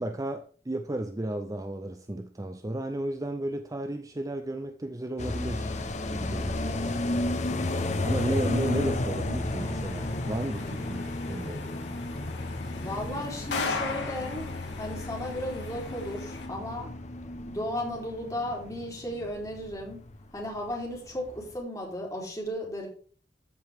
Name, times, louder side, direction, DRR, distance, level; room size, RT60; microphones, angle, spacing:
voice 1, 0.0-5.7 6.1-7.2 8.0-11.7, right 1 dB, 20° right, 0.6 m, -33 dB
sound 1, 5.2-20.3 20.6-20.7 20.9-21.5, left 2 dB, 45° left, 0.9 m, -33 dB
sound 2, 9.3-16.5, left 4 dB, 90° left, 1.9 m, -39 dB
voice 2, 12.7-14.5 14.8-17.0 17.5-20.0 20.3-22.9, left 1 dB, 20° left, 3.5 m, -35 dB
14.0 x 5.2 x 3.6 m
head